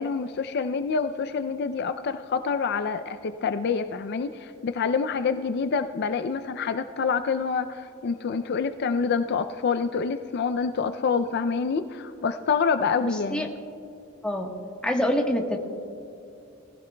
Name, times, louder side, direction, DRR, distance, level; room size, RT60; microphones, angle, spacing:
voice 1, 0.0-13.5, left 5 dB, 55° left, 10 dB, 0.4 m, -27 dB
voice 2, 13.0-13.5 14.2-14.5 14.8-15.6, equal, 5° left, 0 dB, 1.2 m, -26 dB
20.0 x 16.0 x 2.2 m, 2.6 s
head